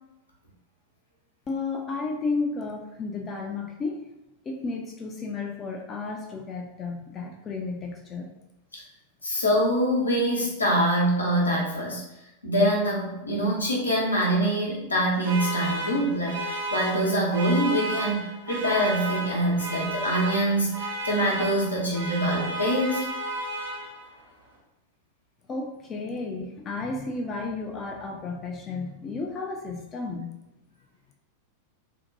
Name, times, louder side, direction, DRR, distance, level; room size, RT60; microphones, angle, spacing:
voice 1, 1.5-4.1 4.4-8.3 25.5-30.3, left 3 dB, 25° left, 1 dB, 0.3 m, -32 dB
voice 2, 9.2-12.0 12.4-23.1, right 1 dB, 80° left, -4 dB, 0.7 m, -24 dB
sound 1, 15.2-24.2, right 1 dB, 65° right, 0.8 m, -33 dB
2.6 x 2.1 x 2.6 m, 0.91 s
figure-of-eight pair, 90°, 0 cm